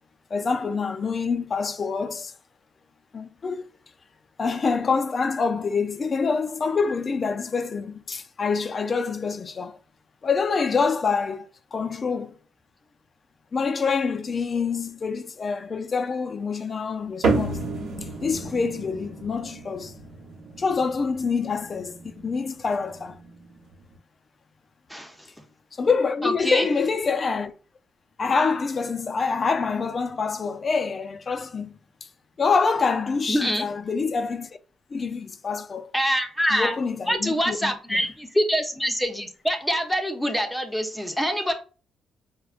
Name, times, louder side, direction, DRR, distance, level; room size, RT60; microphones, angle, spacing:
voice 1, 0.3-2.3 3.1-3.7 4.4-9.8 10.2-12.3 13.5-17.6 18.2-19.9 20.6-23.2 25.8-27.5 28.2-31.8 32.4-34.5 34.9-35.9 36.5-38.0, left 5 dB, 40° left, 0.4 m, -26 dB
sound 1, 17.2-24.0, right 3 dB, 80° right, 1.0 m, -32 dB
voice 2, 24.9-25.3 26.2-26.7 33.3-33.7 35.9-36.7 37.1-41.5, equal, 5° left, 0.6 m, -25 dB
4.6 x 2.1 x 2.4 m
cardioid pair, 90°, 0 cm